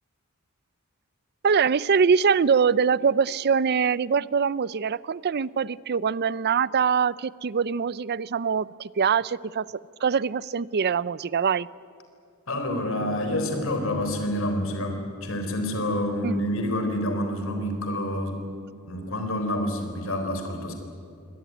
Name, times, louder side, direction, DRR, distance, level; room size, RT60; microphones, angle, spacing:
voice 1, 1.4-9.7 10.0-11.7 16.2-16.5, right 6 dB, 50° right, 21 dB, 0.5 m, -23 dB
voice 2, 12.5-18.4 18.9-20.7, left 1 dB, 65° left, 5 dB, 4.0 m, -28 dB
23.5 x 19.0 x 9.3 m, 2.5 s
head